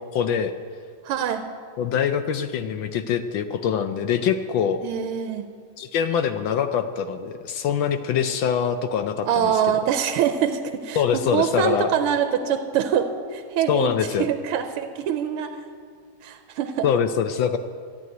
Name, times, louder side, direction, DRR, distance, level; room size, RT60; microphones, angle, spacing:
voice 1, 0.1-0.5 1.8-4.8 5.8-9.5 11.0-11.9 13.7-14.3 16.8-17.6, left 8 dB, 70° left, 9 dB, 1.3 m, -24 dB
voice 2, 1.0-1.5 4.8-5.5 9.2-13.9 14.2-15.6 16.2-16.9, right 8 dB, 90° right, 8 dB, 1.6 m, -24 dB
14.0 x 7.9 x 9.2 m, 2.1 s
omnidirectional pair, 2.4 m